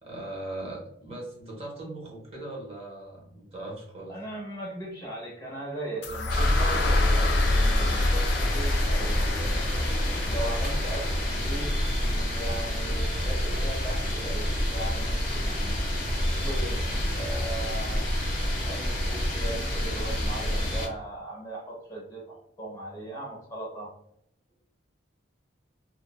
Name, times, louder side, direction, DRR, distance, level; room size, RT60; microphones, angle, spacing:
voice 1, 0.0-4.2, right 1 dB, 30° right, -2 dB, 0.7 m, -39 dB
voice 2, 4.1-9.6 10.2-11.7 12.0-15.8 16.3-16.8 17.1-18.1 18.6-23.9, right 1 dB, 20° left, -2 dB, 0.6 m, -38 dB
sound 1, 6.0-14.0, left 2 dB, 60° left, 0.3 m, -28 dB
sound 2, 6.3-20.9, equal, 45° left, 1.2 m, -28 dB
3.0 x 2.0 x 2.2 m, 0.72 s
head